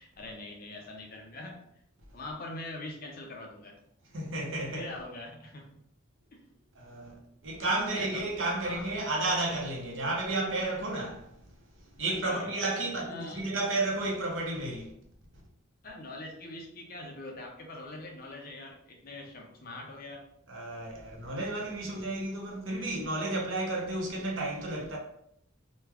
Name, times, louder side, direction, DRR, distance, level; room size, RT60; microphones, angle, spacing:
voice 1, 0.0-1.6 2.1-3.8 4.7-5.7 6.3-6.4 7.6-8.3 8.6-8.8 12.1-13.5 15.8-20.3 21.9-22.0 22.8-22.9, left 2 dB, 45° left, 0.6 m, -43 dB
voice 2, 4.1-4.9 6.8-11.3 12.0-14.9 20.5-25.0, right 2 dB, 70° right, 0.8 m, -32 dB
3.1 x 2.3 x 3.4 m
head